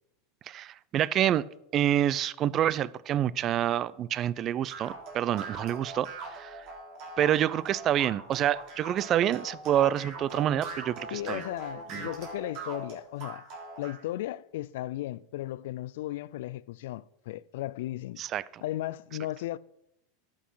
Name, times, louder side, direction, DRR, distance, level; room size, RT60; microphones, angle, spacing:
voice 1, 0.5-1.5 1.7-6.7 7.2-11.4 11.9-12.1 18.2-18.6, right 11 dB, 35° right, 0.4 m, -27 dB
sound 1, 4.7-14.0, right 3 dB, 60° right, 4.1 m, -41 dB
voice 2, 11.1-13.5 13.8-18.2 18.6-19.6, left 15 dB, 75° left, 0.4 m, -35 dB
11.5 x 6.5 x 5.6 m
supercardioid pair, 125°, 0 cm